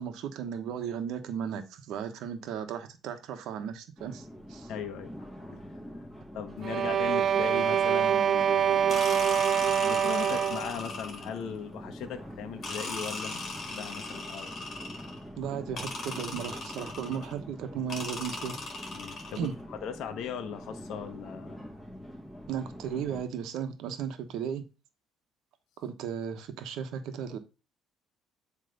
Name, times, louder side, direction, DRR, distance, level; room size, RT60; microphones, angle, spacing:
voice 1, 0.0-4.7 15.4-18.6 19.4-19.5 22.5-24.6 25.8-27.4, right 8 dB, 75° right, 1.1 m, -35 dB
sound 1, 4.0-23.2, equal, 10° left, 2.3 m, -45 dB
voice 2, 4.7-5.1 5.5-5.6 6.0-6.1 6.3-9.4 9.8-13.4 13.7-14.7 18.9-21.6, left 7 dB, 70° left, 1.0 m, -38 dB
sound 2, 6.6-10.8, right 8 dB, 40° right, 0.4 m, -25 dB
sound 3, 8.9-11.5 12.6-15.2 15.8-17.3 17.9-19.5, left 3 dB, 40° left, 2.2 m, -38 dB
7.7 x 3.3 x 5.3 m
cardioid pair, 125°, 0 cm